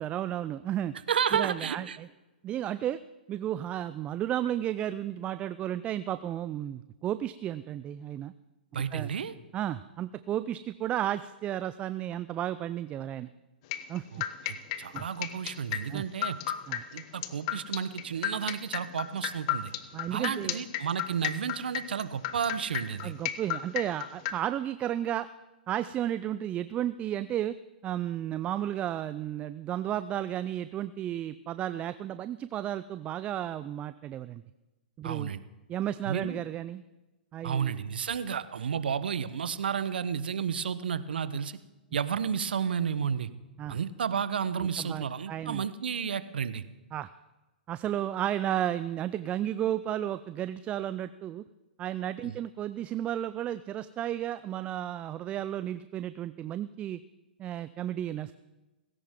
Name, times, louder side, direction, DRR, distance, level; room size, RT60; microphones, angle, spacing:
voice 1, 0.0-0.9 1.3-2.1 2.4-3.0 3.3-8.3 8.9-9.1 9.5-13.3 13.9-14.0 14.9-15.0 15.9-16.0 16.7-16.8 19.9-20.6 23.0-25.3 25.7-27.6 27.8-34.4 35.0-35.3 35.7-36.8 37.3-37.7 43.6-43.8 44.5-45.7 46.9-47.1 47.7-51.4 51.8-57.0 57.4-58.3, right 11 dB, 25° right, 14 dB, 0.4 m, -33 dB
voice 2, 1.1-2.0 8.7-9.3 14.1-16.4 16.9-19.7 20.1-23.1 35.0-35.4 36.1-36.4 37.4-41.6 41.9-43.3 43.7-46.6 52.2-52.4, right 7 dB, 70° right, 14 dB, 1.0 m, -32 dB
sound 1, 13.7-24.3, left 13 dB, 45° left, 1.0 m, -33 dB
18.5 x 16.5 x 3.7 m, 1.1 s
hypercardioid pair, 120°, 5 cm